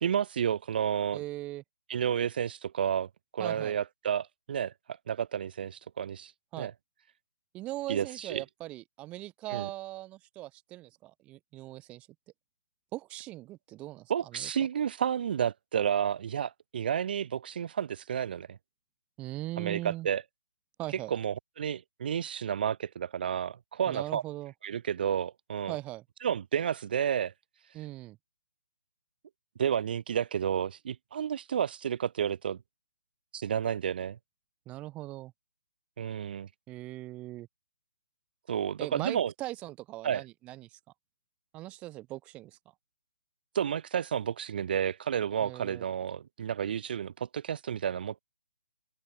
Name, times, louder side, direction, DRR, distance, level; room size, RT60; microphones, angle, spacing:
voice 1, 0.0-1.2 1.9-4.7 5.1-6.3 6.6-6.7 7.9-8.4 9.5-9.7 14.1-18.6 19.6-20.2 21.1-24.2 24.6-25.8 26.2-27.3 29.6-32.6 33.3-34.2 36.0-36.5 38.5-39.3 40.0-40.2 43.5-48.2, right 8 dB, 50° right, 1.5 m, -31 dB
voice 2, 1.1-1.6 3.4-3.8 6.5-6.7 7.5-12.1 12.9-14.5 19.2-20.1 20.8-21.1 23.9-24.5 25.7-26.0 27.7-28.2 34.7-35.3 36.7-37.5 38.8-40.8 41.5-42.6 45.4-45.8, right 17 dB, 20° right, 1.5 m, -40 dB
open air
figure-of-eight pair, 140°, 6 cm